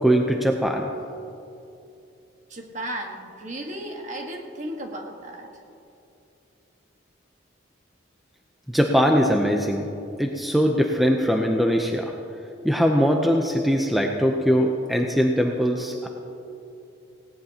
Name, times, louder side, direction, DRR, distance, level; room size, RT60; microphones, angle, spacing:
voice 1, 0.0-0.9 8.7-9.9 10.2-12.1 12.6-16.1, equal, ahead, 1 dB, 0.6 m, -21 dB
voice 2, 2.5-5.5, right 1 dB, 35° right, 2 dB, 1.5 m, -34 dB
18.5 x 17.5 x 2.9 m, 2.8 s
head